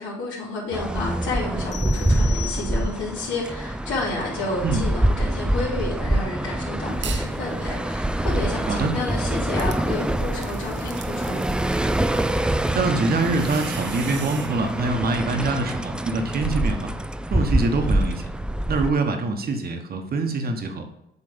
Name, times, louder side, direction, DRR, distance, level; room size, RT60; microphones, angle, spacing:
voice 1, 0.0-11.4, left 2 dB, 80° left, -10 dB, 2.6 m, -30 dB
sound 1, 0.7-18.9, right 1 dB, 5° right, 0.3 m, -25 dB
sound 2, 1.7-3.3, left 12 dB, 60° left, 0.9 m, -38 dB
sound 3, 6.9-7.4 7.8-14.6, right 8 dB, 65° right, 0.8 m, -41 dB
voice 2, 12.7-16.9 17.3-18.2 18.7-20.8, right 3 dB, 50° right, 4 dB, 1.2 m, -24 dB
8.1 x 3.3 x 5.1 m, 0.84 s
cardioid pair, 90°, 20 cm